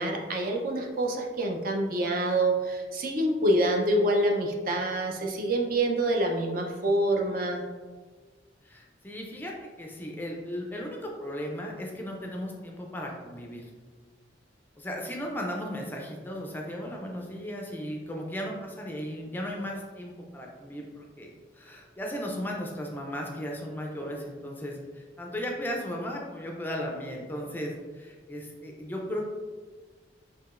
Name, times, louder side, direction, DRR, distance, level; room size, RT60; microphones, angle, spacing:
voice 1, 0.0-7.6, right 1 dB, 50° right, 1 dB, 0.5 m, -26 dB
voice 2, 8.6-13.7 14.8-29.3, equal, 10° left, 0 dB, 0.4 m, -36 dB
4.7 x 2.8 x 2.4 m, 1.5 s
head